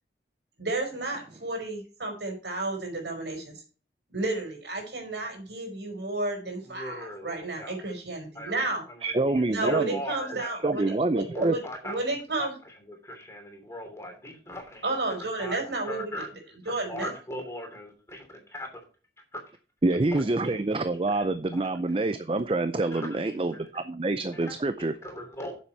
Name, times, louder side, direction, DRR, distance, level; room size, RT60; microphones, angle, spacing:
voice 1, 0.6-3.6 4.1-8.8 9.5-12.5 14.8-16.2 16.6-17.1, right 2 dB, 75° right, 2 dB, 4.8 m, -32 dB
voice 2, 6.6-7.8 8.3-11.0 11.3-12.0 12.4-14.9 15.2-15.6 15.9-16.3 16.6-18.8 19.3-19.4 20.1-20.6 21.5-21.6 22.9-23.8 24.3-24.5 25.0-25.5, equal, 15° left, 3 dB, 3.0 m, -40 dB
voice 3, 9.0-10.0 10.6-11.6 19.8-24.9, right 2 dB, 30° right, 11 dB, 0.5 m, -26 dB
9.5 x 7.3 x 4.5 m, 0.37 s
head